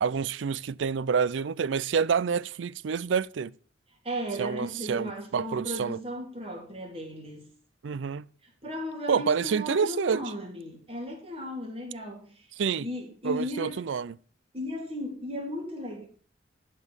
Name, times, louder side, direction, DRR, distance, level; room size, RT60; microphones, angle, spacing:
voice 1, 0.0-3.5 4.4-6.0 7.8-8.3 9.1-10.2 12.6-12.9 13.2-14.1, right 6 dB, 85° right, 0.4 m, -28 dB
voice 2, 4.0-7.5 8.4-12.5 12.8-13.8 14.5-16.0, left 1 dB, 30° right, 3.0 m, -36 dB
12.0 x 5.4 x 7.1 m
head